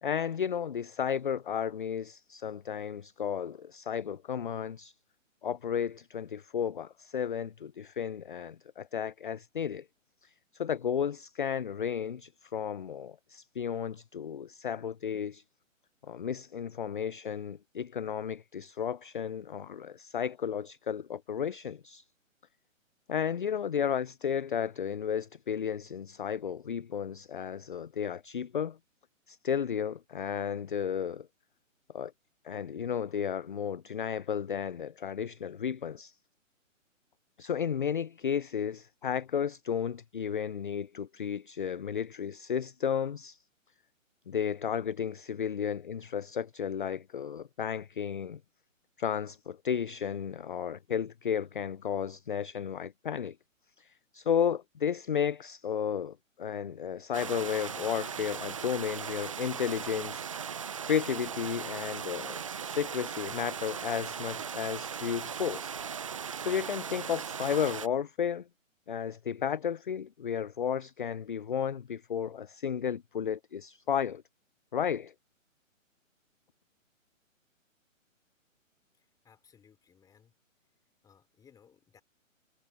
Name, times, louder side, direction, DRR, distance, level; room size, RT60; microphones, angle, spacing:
voice 1, 0.0-4.9 5.4-9.9 10.2-15.4 16.0-22.0 23.1-28.8 29.3-31.3 31.9-32.1 32.4-36.2 37.4-43.4 44.3-48.4 49.0-53.4 53.8-60.2 60.9-65.7 66.4-68.5 68.9-74.2 74.7-75.1, left 8 dB, 40° left, 0.4 m, -33 dB
sound 1, 57.1-67.9, right 7 dB, 25° right, 0.5 m, -38 dB
voice 2, 78.9-80.3 81.0-82.0, left 7 dB, 10° left, 4.2 m, -62 dB
hypercardioid pair, 150°, 40 cm